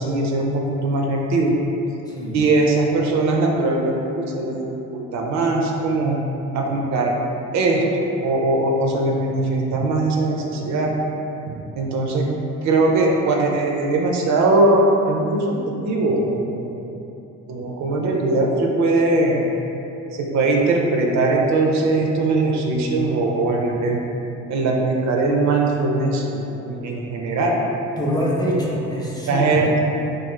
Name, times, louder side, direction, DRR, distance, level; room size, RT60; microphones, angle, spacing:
voice 1, 0.0-1.6 2.3-6.2 6.5-7.1 7.5-10.9 11.5-12.3 12.6-16.8 17.5-19.4 20.1-24.0 24.5-27.6 29.3-29.8, right 2 dB, 65° right, 0 dB, 0.4 m, -20 dB
voice 2, 2.1-2.4 28.0-29.8, equal, 15° left, -5 dB, 0.5 m, -24 dB
2.4 x 2.4 x 3.1 m, 2.9 s
cardioid pair, 90°, 30 cm